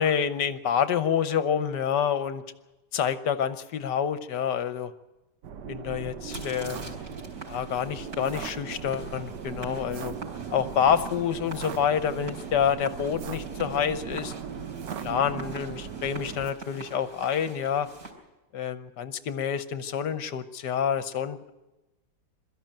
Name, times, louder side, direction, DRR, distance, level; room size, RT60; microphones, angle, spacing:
voice 1, 0.0-2.4 2.9-4.9 5.7-6.9 7.5-10.1 10.5-14.3 15.0-17.9 18.5-21.5, left 8 dB, 65° left, 11 dB, 1.4 m, -27 dB
sound 1, 5.4-16.5, right 7 dB, 65° right, 1.3 m, -38 dB
sound 2, 6.2-18.1, right 2 dB, 35° right, 4.6 m, -45 dB
22.0 x 13.5 x 8.9 m, 1.1 s
omnidirectional pair, 2.2 m